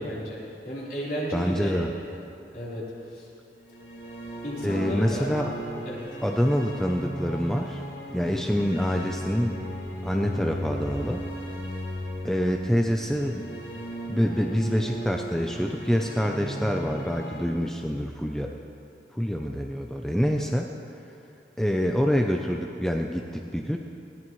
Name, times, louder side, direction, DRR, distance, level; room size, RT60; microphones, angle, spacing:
voice 1, 0.0-1.8 2.5-3.3 4.4-5.3 5.8-6.1, equal, 55° left, -7 dB, 3.9 m, -33 dB
voice 2, 1.3-1.9 4.6-5.5 6.2-7.8 8.1-9.6 10.0-11.2 12.2-13.5 14.1-18.6 19.1-20.7 21.6-23.8, equal, 5° left, 2 dB, 0.5 m, -26 dB
sound 1, 3.6-17.4, equal, 80° left, 2.6 m, -36 dB
20.0 x 16.5 x 3.2 m, 2.7 s
head